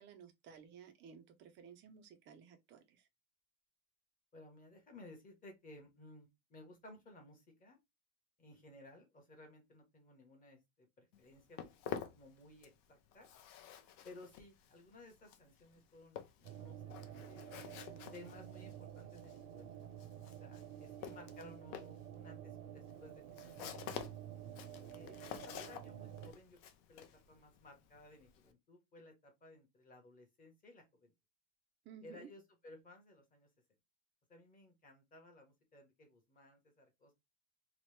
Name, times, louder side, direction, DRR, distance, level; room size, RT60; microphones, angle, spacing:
voice 1, 0.0-3.0 31.9-32.3, right 7 dB, 30° right, 0.3 m, -56 dB
voice 2, 4.3-7.8 8.4-13.3 14.0-17.5 18.1-19.7 20.4-24.0 24.9-25.2 25.4-26.6 26.9-31.1 32.0-33.5 34.3-37.2, left 2 dB, 20° left, 0.8 m, -58 dB
Walk footsteps, 11.1-12.9 13.1-28.5, left 9 dB, 55° left, 0.6 m, -50 dB
sound 1, 16.4-26.3, right 10 dB, 75° right, 0.7 m, -50 dB
2.9 x 2.1 x 3.1 m
cardioid pair, 160°, 43 cm